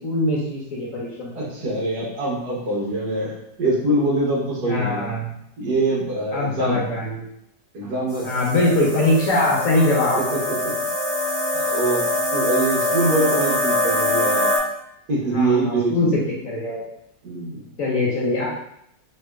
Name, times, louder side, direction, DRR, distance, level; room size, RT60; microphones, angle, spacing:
voice 1, 0.0-1.3 1.6-1.7 4.6-5.3 6.3-7.2 8.2-10.2 15.3-16.8 17.8-18.5, left 2 dB, 55° left, -5 dB, 1.1 m, -22 dB
voice 2, 1.3-5.1 5.6-6.8 7.7-8.3 10.1-10.7 11.5-14.6 15.1-16.2 17.2-17.6, right 2 dB, 65° right, -4 dB, 1.4 m, -24 dB
sound 1, 8.1-14.6, left 1 dB, 35° right, 1.4 m, -23 dB
3.4 x 2.9 x 3.4 m, 0.76 s
omnidirectional pair, 1.9 m